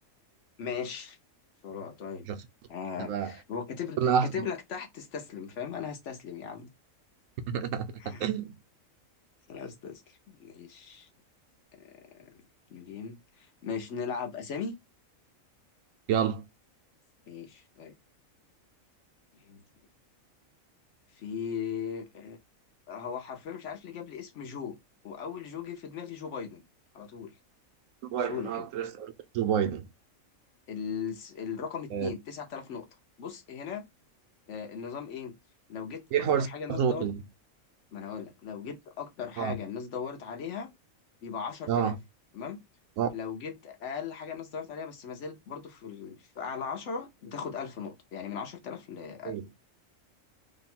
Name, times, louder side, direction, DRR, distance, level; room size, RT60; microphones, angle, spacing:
voice 1, 0.6-1.2 1.6-2.3 2.7-6.7 8.0-8.2 9.5-11.1 11.8-12.4 12.7-14.7 17.3-17.9 19.4-19.6 21.1-22.4 22.9-24.8 25.0-26.6 26.9-27.3 28.3-28.7 30.7-32.9 33.2-33.8 34.5-35.3 35.7-36.0 36.4-37.1 37.9-40.7 41.2-42.0 42.3-42.6 43.1-49.3, left 6 dB, 60° left, 1.1 m, -38 dB
voice 2, 3.0-3.3 4.0-4.3 7.5-8.6 16.1-16.5 28.1-29.9 31.9-32.1 36.1-37.2 39.4-39.6 41.7-41.9 43.0-43.1 49.2-49.5, right 8 dB, 75° right, 1.0 m, -29 dB
3.1 x 2.2 x 4.2 m
omnidirectional pair, 1.4 m